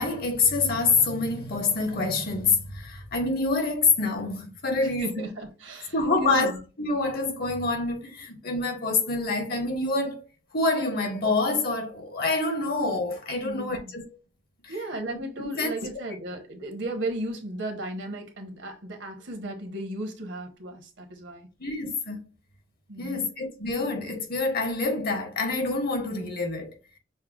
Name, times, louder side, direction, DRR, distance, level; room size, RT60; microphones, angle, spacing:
voice 1, 0.0-5.3 5.9-6.5 6.8-10.2 10.5-14.1 14.6-14.7 15.6-15.7 21.6-22.2 23.0-26.7, left 3 dB, 55° left, 1.1 m, -26 dB
voice 2, 5.0-6.6 13.4-13.9 14.7-21.5 22.9-23.3, right 1 dB, 70° right, 1.1 m, -35 dB
6.5 x 2.2 x 2.4 m
head